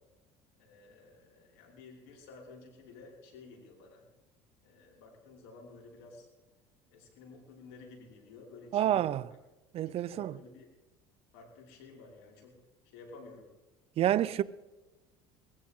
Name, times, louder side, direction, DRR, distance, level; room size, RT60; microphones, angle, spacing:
voice 1, 0.6-4.1 4.6-6.3 6.9-9.1 10.0-10.7 11.3-12.6 12.8-13.5 14.2-14.4, left 3 dB, 80° left, 5.8 m, -52 dB
voice 2, 8.7-9.2 9.7-10.4 14.0-14.4, right 12 dB, 50° right, 0.6 m, -28 dB
21.5 x 15.0 x 3.8 m
supercardioid pair, 95°, 13 cm